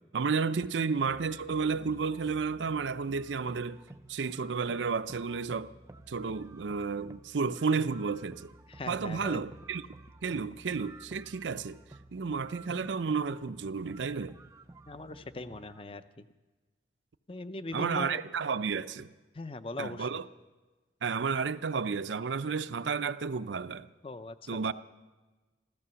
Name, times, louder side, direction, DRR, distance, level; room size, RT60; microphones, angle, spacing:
voice 1, 0.0-3.8 4.1-5.7 6.1-8.5 8.9-9.9 10.2-11.8 12.1-14.4 17.7-19.1 19.8-20.3 21.0-23.9 24.5-24.7, right 5 dB, 85° right, 0.5 m, -32 dB
sound 1, 1.0-15.8, right 2 dB, 15° right, 0.4 m, -52 dB
voice 2, 8.7-9.4 14.9-16.2 17.3-18.2 19.3-20.1 24.0-24.4, left 2 dB, 30° left, 0.6 m, -40 dB
15.0 x 14.0 x 6.9 m
head